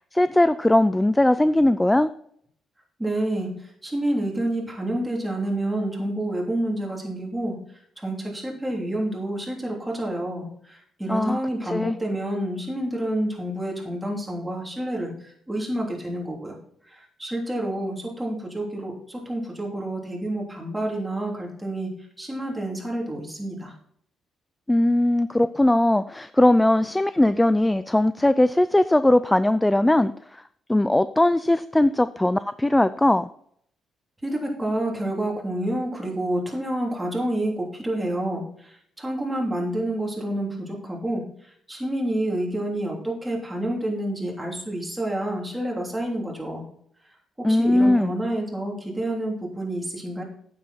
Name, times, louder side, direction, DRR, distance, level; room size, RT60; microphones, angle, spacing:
voice 1, 0.0-2.1 11.1-11.4 11.7-12.0 24.7-30.4 30.7-33.3 47.4-48.1, left 1 dB, 10° left, 14 dB, 0.3 m, -20 dB
voice 2, 3.0-7.6 8.0-16.5 16.8-23.7 34.2-46.6 47.4-50.2, right 1 dB, 10° right, -1 dB, 3.2 m, -29 dB
9.1 x 7.8 x 4.3 m, 0.66 s
cardioid pair, 90°, 0 cm